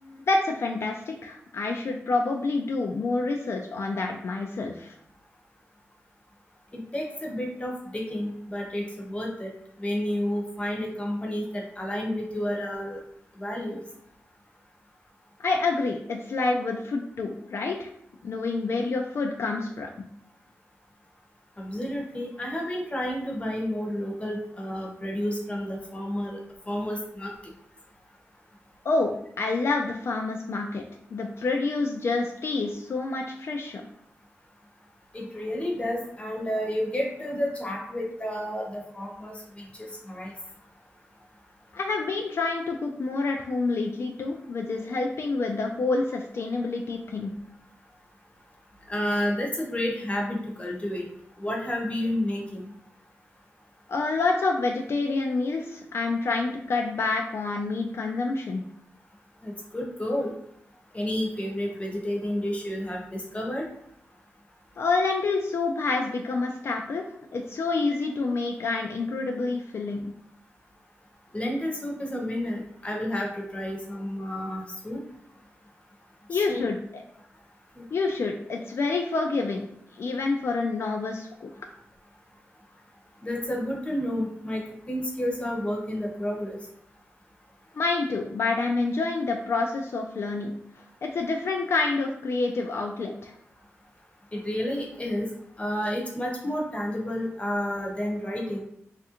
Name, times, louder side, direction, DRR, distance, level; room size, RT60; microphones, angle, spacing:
voice 1, 0.0-4.9 15.4-17.9 18.2-19.9 28.8-30.8 31.1-33.8 41.7-47.3 53.9-58.6 64.8-67.0 67.3-70.1 76.3-77.0 77.9-79.7 79.9-81.5 87.8-90.5 91.0-93.3, left 3 dB, 65° left, 2 dB, 0.3 m, -28 dB
voice 2, 6.7-9.5 9.8-13.0 13.4-13.8 21.6-26.4 26.7-27.3 35.1-40.3 48.9-51.1 51.4-52.7 59.4-60.3 60.9-63.7 71.3-75.0 76.3-76.7 77.7-77.8 83.2-86.6 94.3-95.3 95.6-98.6, left 1 dB, 25° left, 0 dB, 0.7 m, -30 dB
3.2 x 2.4 x 2.8 m, 0.71 s
wide cardioid pair, 85°, 5 cm